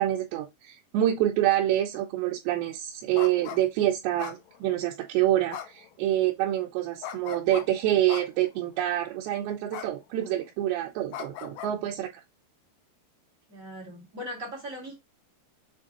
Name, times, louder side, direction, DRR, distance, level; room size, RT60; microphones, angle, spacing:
voice 1, 0.0-12.1, right 13 dB, 85° right, 3.0 m, -27 dB
sound 1, 3.1-3.6 4.2-4.9 5.5-5.9 7.0-7.6 8.1-8.5 9.7-9.9 10.2-10.5 11.1-11.7, left 10 dB, 85° left, 1.9 m, -38 dB
voice 2, 13.5-14.9, equal, 40° right, 1.2 m, -39 dB
7.0 x 2.6 x 2.9 m
omnidirectional pair, 4.9 m